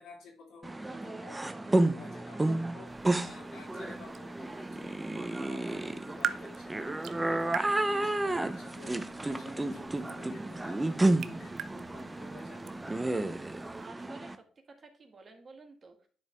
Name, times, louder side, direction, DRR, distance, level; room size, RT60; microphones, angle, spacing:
voice 1, 0.0-2.9 3.2-12.7, left 3 dB, 80° left, 0 dB, 2.7 m, -52 dB
sound 1, 0.6-14.4, right 2 dB, 15° right, 0.6 m, -32 dB
sound 2, 2.8-13.9, right 9 dB, 70° right, 0.5 m, -44 dB
voice 2, 13.8-16.1, right 3 dB, 40° right, 4 dB, 1.7 m, -52 dB
10.0 x 4.7 x 3.4 m, 0.42 s
cardioid pair, 90°, 0 cm